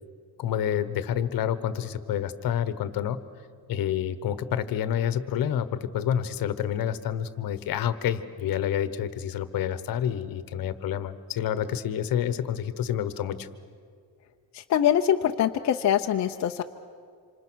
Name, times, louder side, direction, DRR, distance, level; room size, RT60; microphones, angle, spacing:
voice 1, 0.4-3.2 3.7-13.5, left 9 dB, 60° left, 13 dB, 1.2 m, -28 dB
voice 2, 14.5-16.6, left 10 dB, 45° left, 3 dB, 0.7 m, -23 dB
27.0 x 26.5 x 6.3 m, 2.2 s
cardioid pair, 180°, 39 cm